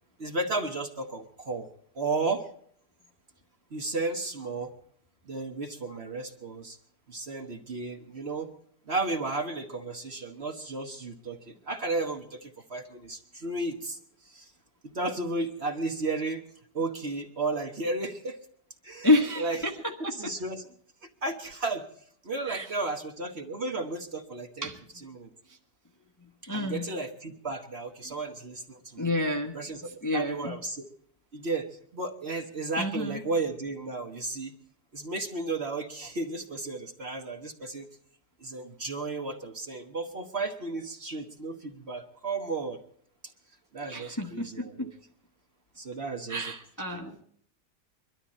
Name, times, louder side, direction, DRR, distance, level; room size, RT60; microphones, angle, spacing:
voice 1, 0.2-1.7 1.9-2.5 3.7-4.7 5.3-6.8 7.1-8.5 8.9-14.0 14.2-14.5 14.8-16.4 16.7-18.4 18.8-19.1 19.4-19.6 20.0-20.6 21.2-21.9 22.2-24.7 25.0-25.3 26.5-29.1 29.5-30.8 31.3-34.5 34.9-37.8 38.4-42.8 43.7-44.9 45.8-46.5 46.9-47.2, right 3 dB, 40° right, 4 dB, 1.4 m, -33 dB
voice 2, 19.0-20.3 22.5-22.7 24.6-24.8 26.5-26.9 28.1-28.2 29.0-29.5 29.8-30.5 32.8-33.2 43.9-44.9 46.3-47.2, left 2 dB, 15° left, 3 dB, 1.0 m, -29 dB
22.5 x 12.5 x 4.3 m, 0.62 s
omnidirectional pair, 1.8 m